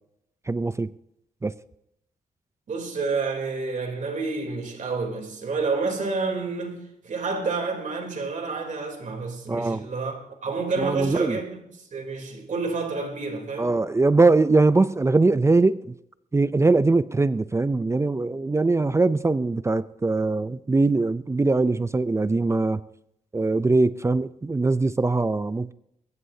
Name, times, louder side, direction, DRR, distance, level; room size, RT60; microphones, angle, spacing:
voice 1, 0.5-0.9 1.4-1.5 9.5-9.9 10.8-11.4 13.6-15.8 16.3-22.8 23.3-25.7, right 3 dB, 20° right, 0.5 m, -21 dB
voice 2, 2.7-6.8 7.0-11.5 11.9-13.7, right 4 dB, 60° right, 3.4 m, -29 dB
21.0 x 19.0 x 2.8 m
cardioid pair, 85°, 14 cm